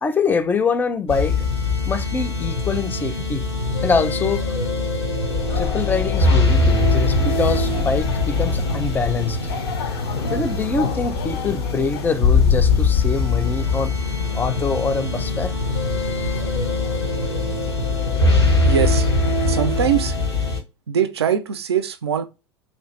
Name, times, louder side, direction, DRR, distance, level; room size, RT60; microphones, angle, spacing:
voice 1, 0.0-1.5 1.9-3.4 3.8-4.5 5.6-9.5 10.3-13.9 14.3-15.5, left 4 dB, 15° left, 0.4 m, -24 dB
sound 1, 1.1-20.6, left 3 dB, 90° left, 1.0 m, -22 dB
sound 2, 5.2-19.9, left 6 dB, 65° left, 0.5 m, -30 dB
voice 2, 18.6-19.1 19.5-20.2 20.9-22.2, right 8 dB, 80° right, 0.4 m, -22 dB
3.1 x 2.5 x 3.0 m
figure-of-eight pair, 80°, 13 cm